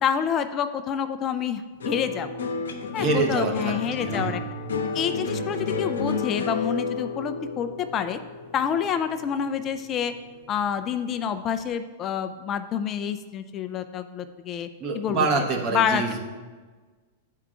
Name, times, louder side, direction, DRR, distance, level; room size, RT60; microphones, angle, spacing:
voice 1, 0.0-2.3 2.9-4.4 4.9-8.2 8.5-10.1 10.5-14.7 14.9-15.3 15.7-16.2, left 8 dB, 35° left, 9 dB, 0.4 m, -28 dB
sound 1, 1.8-10.3 10.6-11.2, left 4 dB, 85° left, 0.8 m, -31 dB
voice 2, 3.0-4.3 14.8-16.2, right 4 dB, 40° right, 1 dB, 1.1 m, -26 dB
10.5 x 4.6 x 2.5 m, 1.4 s
hypercardioid pair, 115°, 0 cm